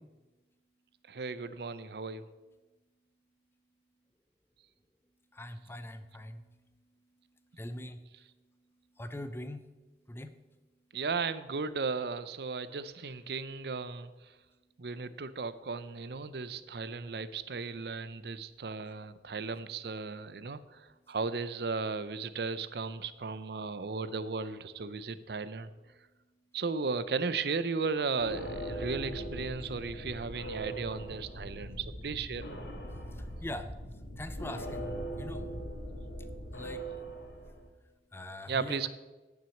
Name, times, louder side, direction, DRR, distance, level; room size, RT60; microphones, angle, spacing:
voice 1, 1.1-2.3 10.9-14.1 14.8-25.7 26.5-32.5 38.5-38.9, right 4 dB, 65° right, 14 dB, 0.6 m, -35 dB
voice 2, 5.3-9.7 10.1-10.4 32.9-35.5 36.5-36.8 38.1-38.9, left 1 dB, 15° left, 10 dB, 0.6 m, -44 dB
sound 1, 28.2-37.7, right 1 dB, 85° left, 1.8 m, -40 dB
10.0 x 6.2 x 7.0 m, 1.2 s
head